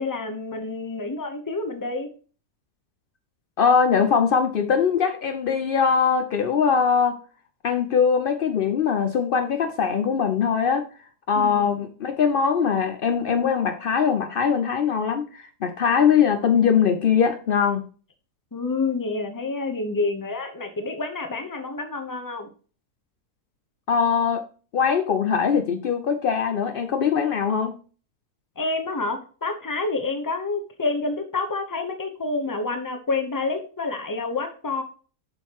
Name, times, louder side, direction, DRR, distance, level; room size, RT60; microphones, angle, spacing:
voice 1, 0.0-2.1 11.3-11.7 18.5-22.5 28.6-34.8, left 3 dB, 20° left, 0.6 m, -28 dB
voice 2, 3.6-7.2 7.6-10.9 11.3-17.8 23.9-24.4 24.7-27.7, left 6 dB, 85° left, 0.4 m, -21 dB
7.6 x 6.3 x 2.9 m
omnidirectional pair, 1.7 m